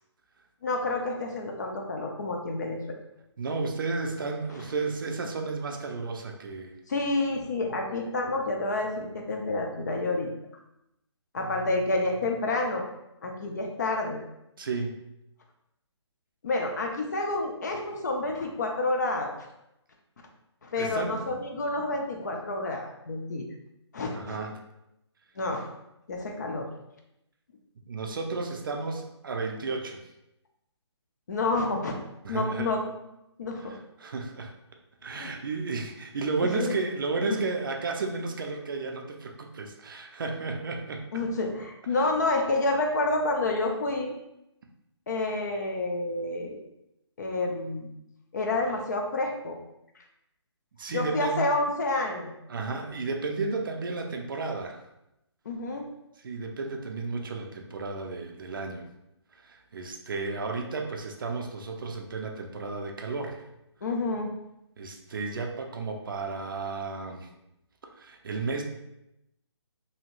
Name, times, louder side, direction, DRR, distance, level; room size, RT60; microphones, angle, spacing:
voice 1, 0.6-2.8 6.9-10.3 11.3-12.8 13.2-14.2 16.4-19.3 20.6-23.4 23.9-24.4 25.4-25.7 26.1-26.7 31.3-32.0 32.3-32.8 33.4-33.8 35.2-35.3 36.5-36.7 37.2-37.4 41.1-44.1 45.1-46.6 47.2-47.9 48.3-49.6 50.9-52.3 55.5-55.9 63.8-64.3, left 2 dB, 40° left, 2 dB, 0.4 m, -29 dB
voice 2, 3.4-6.7 14.6-15.0 20.8-21.2 24.0-24.5 27.9-30.0 32.2-32.7 34.0-34.5 35.0-41.0 50.8-51.5 52.5-54.8 56.2-58.8 59.4-63.4 64.8-67.3 68.0-68.6, right 3 dB, 50° right, 3 dB, 0.4 m, -33 dB
2.7 x 2.4 x 2.9 m, 0.86 s
hypercardioid pair, 165°, 15 cm